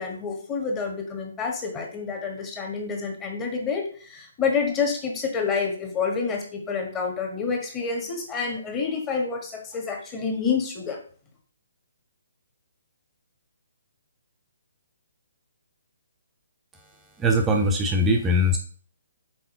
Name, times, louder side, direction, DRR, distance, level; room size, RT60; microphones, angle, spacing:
voice 1, 0.0-11.0, left 5 dB, 15° left, 1 dB, 1.4 m, -28 dB
voice 2, 17.2-18.6, equal, 10° right, 2 dB, 0.7 m, -21 dB
5.7 x 4.9 x 3.8 m, 0.43 s
figure-of-eight pair, 135°, 0 cm